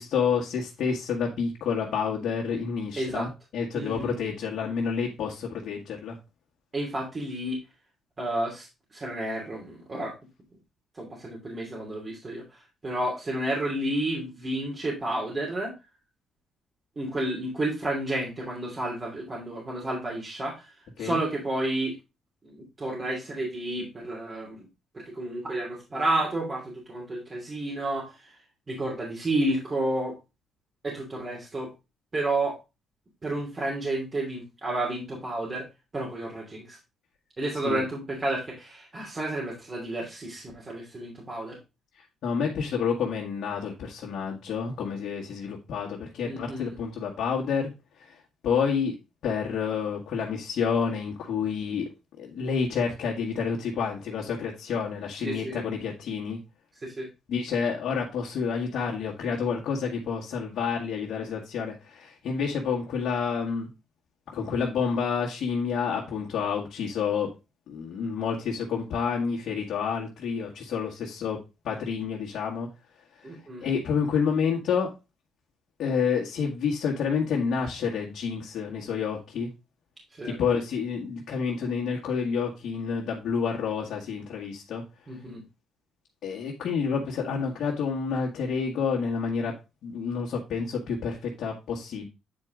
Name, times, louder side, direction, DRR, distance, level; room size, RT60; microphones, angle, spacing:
voice 1, 0.0-6.2 21.0-21.2 37.7-37.8 42.0-47.7 48.0-48.2 48.4-48.9 49.2-51.9 52.2-56.4 57.3-63.7 64.3-67.3 67.7-72.7 73.2-74.9 75.8-79.5 80.2-84.8 86.2-89.5 89.8-92.1, left 6 dB, 70° left, -2 dB, 1.7 m, -29 dB
voice 2, 3.0-3.3 3.7-4.2 6.7-7.6 8.2-10.1 10.9-15.7 17.0-21.9 22.4-24.7 24.9-28.4 28.7-30.2 30.8-31.7 32.1-32.6 33.2-35.7 35.9-36.8 37.4-41.6 46.2-46.7 55.2-55.6 56.8-57.1 73.2-73.7 80.1-80.4 85.1-85.4, right 1 dB, 30° right, -3 dB, 2.9 m, -31 dB
8.8 x 4.6 x 3.8 m, 0.27 s
cardioid pair, 80°, 0 cm